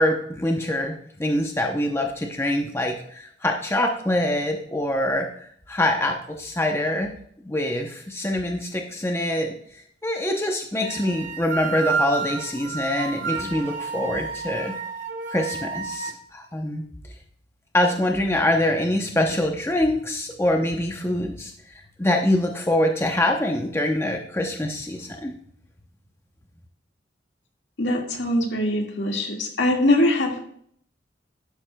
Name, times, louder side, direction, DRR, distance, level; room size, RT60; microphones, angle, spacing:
voice 1, 0.0-5.3 5.7-7.1 7.4-9.5 10.0-14.7 15.3-16.8 17.7-21.5 22.0-25.3, left 1 dB, 15° left, 2 dB, 0.7 m, -24 dB
sound 1, 10.8-16.1, right 5 dB, 40° right, 1.4 m, -30 dB
voice 2, 27.8-30.4, left 1 dB, 70° left, 1 dB, 1.8 m, -22 dB
12.0 x 9.7 x 2.2 m, 0.64 s
head